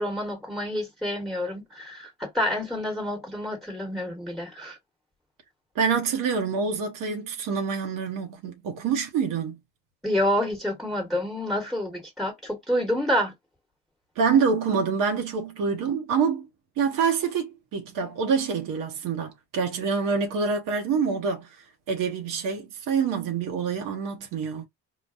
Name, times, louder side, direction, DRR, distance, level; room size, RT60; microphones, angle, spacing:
voice 1, 0.0-4.8 10.0-13.3, left 1 dB, ahead, 1.2 m, -28 dB
voice 2, 5.7-9.6 14.2-16.5 16.8-21.5 21.9-24.7, right 6 dB, 75° right, 0.9 m, -26 dB
3.9 x 2.2 x 2.5 m
supercardioid pair, 80°, 33 cm